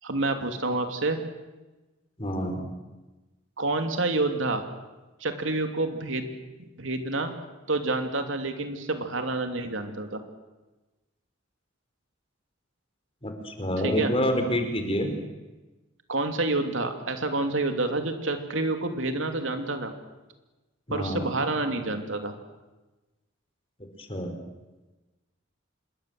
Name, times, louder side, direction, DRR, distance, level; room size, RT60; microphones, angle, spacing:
voice 1, 0.0-1.2 3.6-4.6 5.2-6.3 6.8-7.3 7.7-10.2 13.8-14.1 16.1-19.9 20.9-22.3, right 2 dB, 85° right, 6 dB, 3.0 m, -28 dB
voice 2, 2.2-2.6 13.2-15.1 20.9-21.3 24.0-24.3, equal, 30° left, 5 dB, 4.3 m, -27 dB
26.5 x 22.0 x 7.9 m, 1.1 s
head